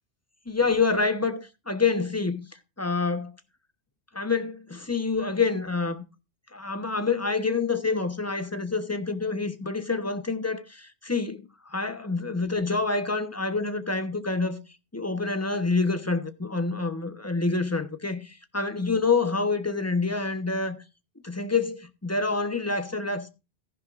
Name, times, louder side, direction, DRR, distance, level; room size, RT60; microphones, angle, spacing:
voice 1, 0.5-2.4 2.8-3.3 4.1-6.0 6.5-14.6 14.9-20.8 21.2-23.3, left 4 dB, 15° left, 1.1 m, -27 dB
14.5 x 10.5 x 2.6 m
omnidirectional pair, 1.1 m